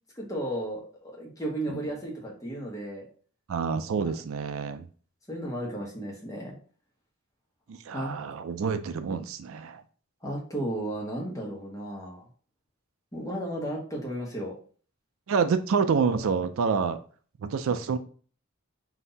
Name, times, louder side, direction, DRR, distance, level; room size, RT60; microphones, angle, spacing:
voice 1, 0.1-3.0 4.0-4.2 5.3-6.5 7.9-8.1 10.2-12.2 13.1-14.6, right 1 dB, 15° left, 1.1 m, -34 dB
voice 2, 3.5-4.9 7.7-9.8 15.3-17.0 17.4-18.0, right 5 dB, 70° right, 0.4 m, -27 dB
3.9 x 2.7 x 4.0 m
head